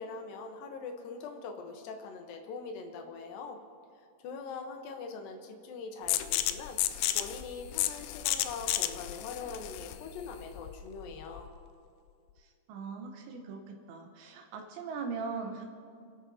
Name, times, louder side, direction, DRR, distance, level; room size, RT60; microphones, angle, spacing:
voice 1, 0.0-3.6 4.2-6.8 7.1-11.5, left 4 dB, 70° left, 4 dB, 2.5 m, -42 dB
sound 1, 6.1-11.6, left 14 dB, 85° left, 2.7 m, -33 dB
voice 2, 12.4-15.7, right 5 dB, 85° right, 2 dB, 3.3 m, -40 dB
29.5 x 11.5 x 2.8 m, 2.3 s
omnidirectional pair, 4.9 m